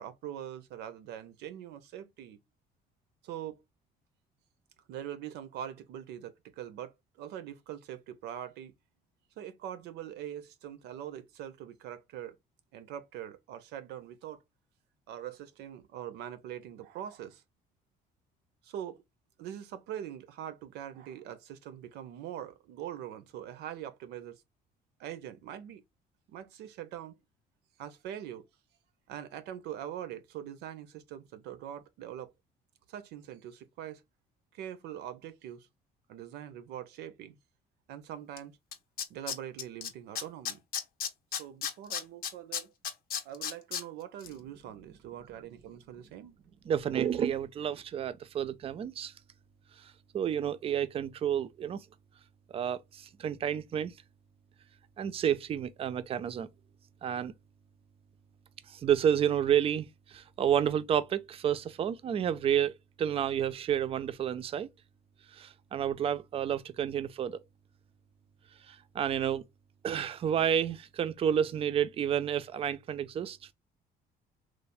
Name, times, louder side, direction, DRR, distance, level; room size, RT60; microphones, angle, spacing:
voice 1, 0.0-2.4 3.2-3.6 4.9-8.7 9.4-12.4 12.7-14.4 15.1-17.4 18.6-19.0 19.4-24.4 25.0-25.8 26.3-27.2 27.8-28.5 29.1-32.3 32.9-34.0 34.5-35.7 36.1-37.4 37.9-38.6 39.1-40.6 41.3-42.7 43.2-46.3, right 10 dB, 80° right, 0.5 m, -43 dB
Tools, 38.4-38.5 38.7-39.9 40.2-43.8 44.2-44.3, left 8 dB, 60° left, 0.5 m, -34 dB
voice 2, 46.7-49.1 50.1-51.8 52.5-53.9 55.0-56.5 57.0-57.3 58.7-59.9 60.1-62.7 63.0-64.7 65.3-67.4 68.7-69.4 69.8-73.4, right 9 dB, 35° right, 0.3 m, -30 dB
3.1 x 2.0 x 2.4 m
cardioid pair, 110°, 17 cm